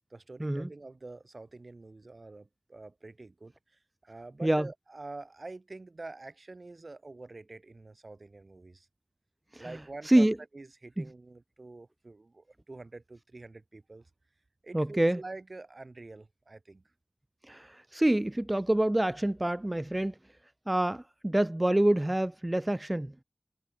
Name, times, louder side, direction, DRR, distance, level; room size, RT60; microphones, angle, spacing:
voice 1, 0.0-8.9 9.6-10.3 10.5-14.1 14.6-16.8, right 2 dB, 60° right, 4.2 m, -46 dB
voice 2, 10.0-10.4 11.0-11.1 14.7-15.2 17.4-20.2 20.7-23.1, right 1 dB, 25° right, 0.5 m, -27 dB
wide cardioid pair, 60°, 0 cm